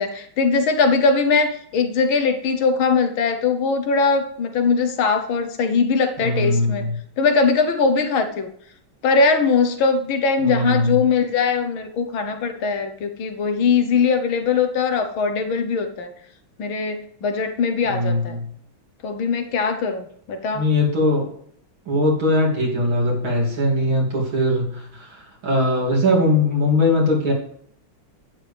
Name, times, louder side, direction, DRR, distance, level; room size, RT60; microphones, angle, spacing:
voice 1, 0.0-6.9 7.2-8.5 9.0-16.1 16.6-18.4 19.0-20.7, left 4 dB, 75° left, 7 dB, 1.7 m, -21 dB
voice 2, 6.2-6.9 10.4-11.0 17.8-18.4 20.5-21.3 21.9-27.3, left 1 dB, 70° right, -3 dB, 3.7 m, -20 dB
11.5 x 9.4 x 3.5 m, 0.65 s
omnidirectional pair, 2.3 m